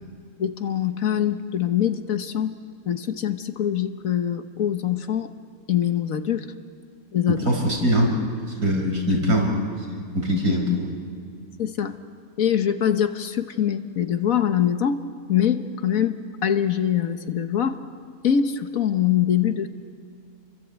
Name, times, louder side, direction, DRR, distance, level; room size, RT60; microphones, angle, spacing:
voice 1, 0.4-2.5 2.9-5.3 5.7-6.4 7.1-7.4 11.6-11.9 12.4-15.0 15.3-17.8 18.2-19.7, left 9 dB, 65° left, 8 dB, 1.5 m, -23 dB
voice 2, 7.3-8.1 8.5-10.9, equal, 85° right, 1 dB, 5.1 m, -23 dB
29.0 x 23.0 x 8.2 m, 2.2 s
omnidirectional pair, 1.6 m